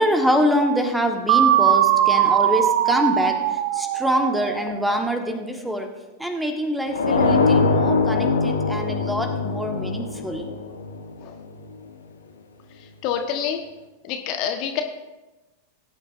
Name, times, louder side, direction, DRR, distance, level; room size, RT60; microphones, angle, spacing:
voice 1, 0.0-3.4 3.7-5.9 6.2-10.5, equal, 5° right, 5 dB, 1.4 m, -24 dB
sound 1, 1.3-5.1, right 12 dB, 45° right, 0.5 m, -20 dB
sound 2, 6.9-11.6, left 4 dB, 70° left, 1.3 m, -22 dB
voice 2, 12.8-13.6 14.0-14.8, left 8 dB, 40° left, 4 dB, 1.3 m, -27 dB
20.5 x 9.8 x 2.7 m, 1.1 s
figure-of-eight pair, 90°, 0 cm